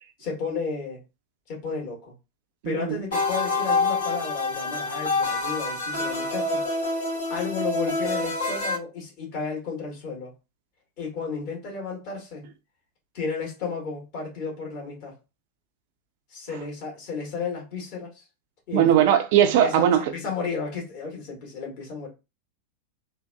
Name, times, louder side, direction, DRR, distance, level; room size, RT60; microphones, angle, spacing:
voice 1, 0.2-1.0 1.5-2.1 2.6-6.6 7.3-10.3 11.0-12.5 13.1-15.1 16.3-18.2 18.7-19.0 19.4-22.1, left 5 dB, 45° left, 1.9 m, -33 dB
voice 2, 2.6-3.0 18.7-20.0, right 10 dB, 50° right, 0.5 m, -19 dB
sound 1, 3.1-8.8, left 3 dB, 65° left, 1.3 m, -27 dB
3.8 x 2.5 x 2.3 m
figure-of-eight pair, 90°, 0 cm